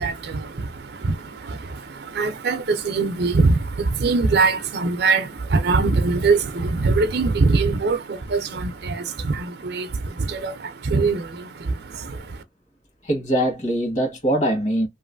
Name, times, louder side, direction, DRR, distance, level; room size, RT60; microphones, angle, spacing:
voice 1, 0.0-12.4, right 3 dB, 60° right, 0.5 m, -23 dB
voice 2, 13.0-14.9, right 1 dB, 40° left, 1.5 m, -22 dB
3.1 x 2.5 x 2.5 m
head